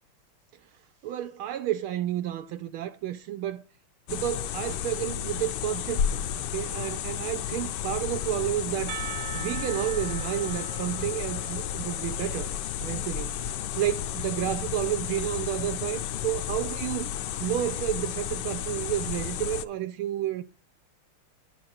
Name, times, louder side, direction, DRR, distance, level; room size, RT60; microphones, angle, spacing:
voice 1, 1.0-3.6 4.1-9.0 9.3-12.5 12.8-17.1 17.4-20.4, right 12 dB, 80° right, 1.5 m, -31 dB
sound 1, 4.1-19.7, left 10 dB, 75° left, 1.0 m, -32 dB
Percussion, 8.9-12.8, right 12 dB, 60° right, 0.7 m, -41 dB
11.0 x 4.6 x 6.3 m
omnidirectional pair, 2.4 m